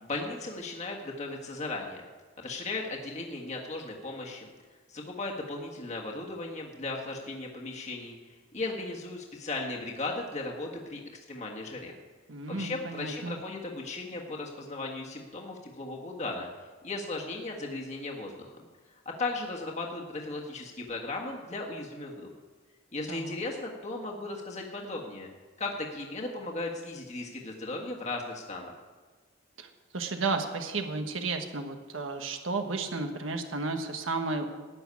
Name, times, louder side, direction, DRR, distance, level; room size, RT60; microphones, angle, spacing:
voice 1, 0.0-2.0 2.4-4.5 4.9-12.0 12.5-16.5 16.8-18.7 19.0-22.3 22.9-25.3 25.6-28.7, left 2 dB, 35° left, -1 dB, 1.6 m, -36 dB
voice 2, 12.3-13.4 23.1-23.4 29.6-29.7 29.9-34.5, right 3 dB, 85° right, 5 dB, 1.3 m, -33 dB
13.5 x 6.3 x 9.7 m, 1.3 s
head